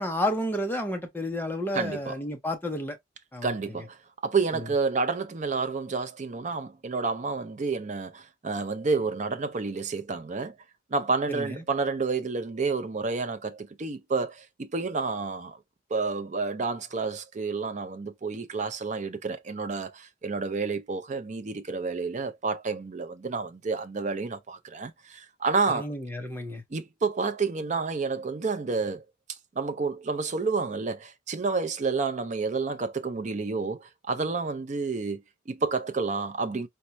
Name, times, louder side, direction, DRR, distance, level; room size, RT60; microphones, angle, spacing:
voice 1, 0.0-3.0 3.3-3.5 11.3-11.6 25.7-26.6, left 1 dB, 10° left, 0.6 m, -31 dB
voice 2, 1.7-2.2 3.4-10.5 10.9-15.6 15.9-25.9 26.7-29.0 29.6-36.7, right 4 dB, 35° right, 0.4 m, -30 dB
4.3 x 2.1 x 2.5 m
head